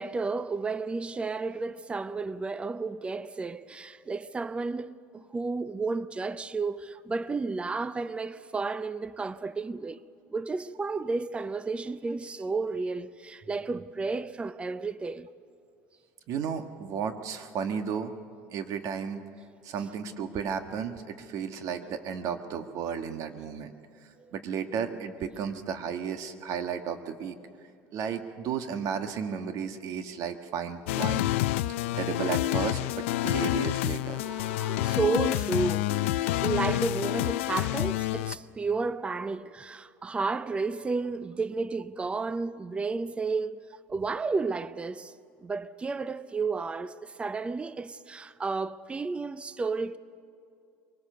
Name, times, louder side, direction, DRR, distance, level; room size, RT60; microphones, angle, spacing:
voice 1, 0.0-10.0 10.3-15.3 24.2-24.3 34.1-45.1 45.4-50.0, right 4 dB, 15° right, 0.6 m, -32 dB
voice 2, 16.3-18.1 18.5-19.2 19.6-23.7 24.3-27.4 27.9-31.3 32.0-34.2, right 7 dB, 55° right, 1.5 m, -33 dB
sound 1, 30.9-38.4, left 15 dB, 90° left, 0.5 m, -28 dB
23.5 x 19.0 x 6.8 m
supercardioid pair, 110°, 7 cm